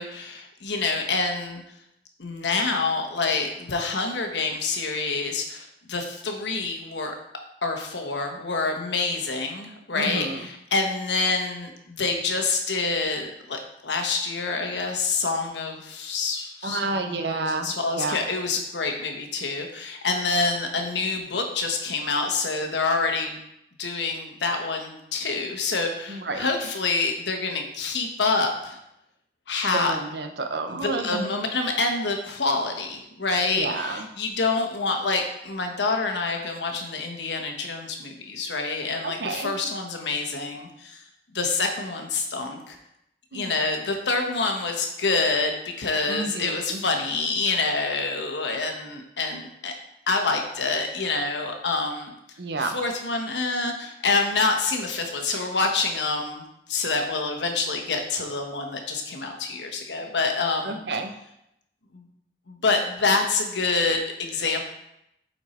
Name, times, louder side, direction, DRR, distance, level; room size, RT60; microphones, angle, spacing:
voice 1, 0.0-1.6 2.2-7.1 7.6-23.4 23.8-28.8 29.5-30.0 30.8-41.0 41.3-42.8 43.3-49.7 50.1-52.1 52.6-56.4 56.7-60.8 61.9-62.0 62.5-64.6, left 3 dB, 85° left, 3 dB, 1.1 m, -27 dB
voice 2, 9.9-10.5 16.6-18.2 26.1-26.5 29.7-31.3 33.5-34.1 39.0-39.5 43.3-43.5 46.1-46.8 52.4-52.8 60.6-61.1, right 3 dB, 70° right, 6 dB, 0.8 m, -30 dB
8.1 x 4.4 x 4.3 m, 0.80 s
head